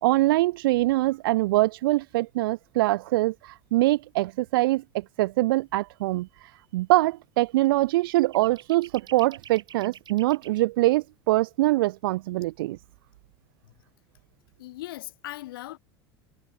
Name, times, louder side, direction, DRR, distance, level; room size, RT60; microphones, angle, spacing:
voice 1, 0.0-6.3 6.7-12.8, right 18 dB, 70° right, 0.5 m, -23 dB
sound 1, 7.6-7.7 8.1-10.6, right 9 dB, 35° right, 5.5 m, -47 dB
voice 2, 14.6-15.8, left 17 dB, 70° left, 4.7 m, -39 dB
hypercardioid pair, 80°, 12 cm